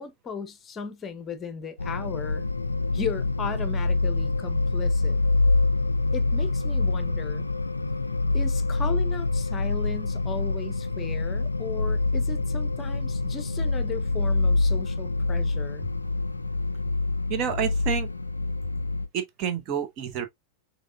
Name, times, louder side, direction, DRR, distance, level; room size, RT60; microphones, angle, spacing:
voice 1, 0.0-2.4 2.9-5.2 6.1-7.5 8.3-15.9, left 5 dB, 20° left, 0.9 m, -36 dB
sound 1, 1.8-19.1, left 3 dB, 80° left, 0.3 m, -26 dB
voice 2, 17.3-18.1 19.1-20.3, right 8 dB, 35° right, 1.0 m, -29 dB
6.4 x 3.2 x 2.4 m
figure-of-eight pair, 90°, 0 cm